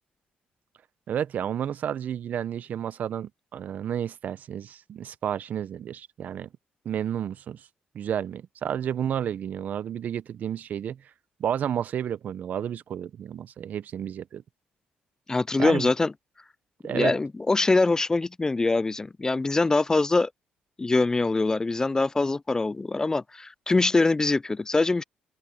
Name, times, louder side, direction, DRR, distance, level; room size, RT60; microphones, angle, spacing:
voice 1, 1.1-6.5 6.8-7.7 7.9-11.0 11.4-14.4 15.6-15.9 16.8-17.1, right 9 dB, 60° right, 0.7 m, -31 dB
voice 2, 15.3-16.1 16.9-20.3 20.8-25.0, left 3 dB, 20° left, 0.3 m, -23 dB
open air
cardioid pair, 85°, 3 cm